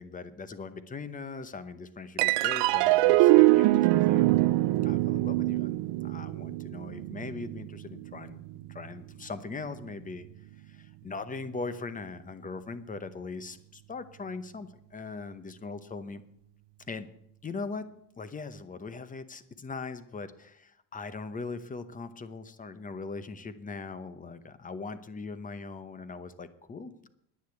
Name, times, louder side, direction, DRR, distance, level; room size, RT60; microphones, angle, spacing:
voice 1, 0.0-4.3 4.8-8.4 8.7-10.2 10.7-16.2 16.9-17.1 17.4-17.9 18.2-27.1, left 4 dB, 20° left, 13 dB, 0.8 m, -40 dB
sound 1, 2.2-8.9, right 18 dB, 70° right, 0.5 m, -24 dB
10.0 x 9.8 x 8.0 m, 0.76 s
cardioid pair, 140°, 45 cm